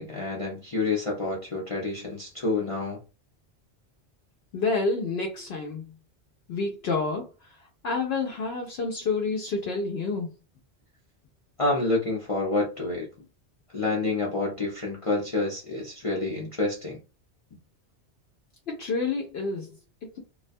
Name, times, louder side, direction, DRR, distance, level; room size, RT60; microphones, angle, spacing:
voice 1, 0.0-3.0 11.6-13.3 13.7-17.0, left 3 dB, 40° left, 0.5 m, -28 dB
voice 2, 4.5-5.9 6.5-7.6 7.8-10.3 18.7-20.2, left 3 dB, 65° left, 0.8 m, -29 dB
2.3 x 2.2 x 2.5 m
omnidirectional pair, 1.2 m